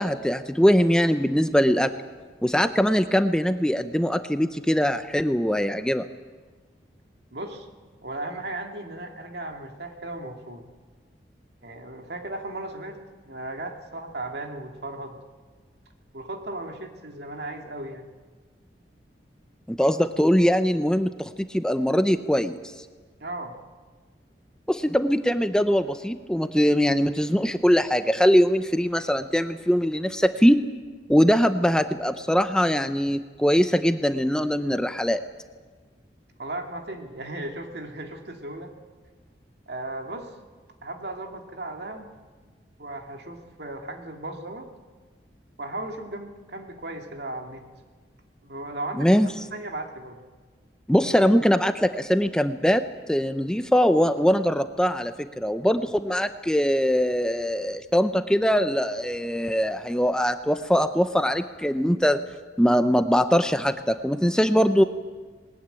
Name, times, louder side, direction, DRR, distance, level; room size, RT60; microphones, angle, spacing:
voice 1, 0.0-1.9 2.4-6.1 19.7-22.6 24.7-30.7 31.1-35.2 49.0-49.3 50.9-52.8 53.1-62.2 62.6-64.8, equal, 5° left, 9 dB, 0.6 m, -22 dB
voice 2, 7.3-7.7 8.0-10.6 11.6-13.0 13.2-15.2 16.1-18.1 23.2-23.6 36.4-38.7 39.7-40.3 40.8-42.1 42.8-44.7 45.6-47.6 48.4-50.2, right 2 dB, 70° right, 3 dB, 2.4 m, -36 dB
20.5 x 19.5 x 8.9 m, 1.4 s
head